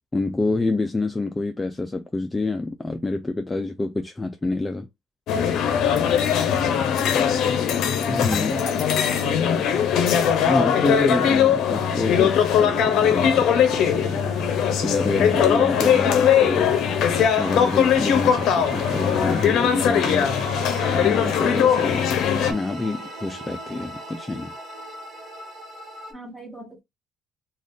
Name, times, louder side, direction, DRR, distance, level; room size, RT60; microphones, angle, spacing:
voice 1, 0.1-4.9 8.1-8.5 10.4-14.5 14.8-16.8 17.4-20.3 20.9-22.1 22.5-24.5, left 2 dB, 15° left, 0.4 m, -27 dB
sound 1, 5.3-22.5, left 8 dB, 70° left, 0.6 m, -20 dB
voice 2, 6.6-7.0 8.3-9.8 26.1-26.8, right 1 dB, 5° right, 1.2 m, -37 dB
sound 2, 8.3-26.1, right 3 dB, 50° right, 1.2 m, -38 dB
Cheering / Applause / Crowd, 17.2-21.9, right 6 dB, 80° right, 1.0 m, -43 dB
2.5 x 2.3 x 3.5 m
cardioid pair, 115°, 0 cm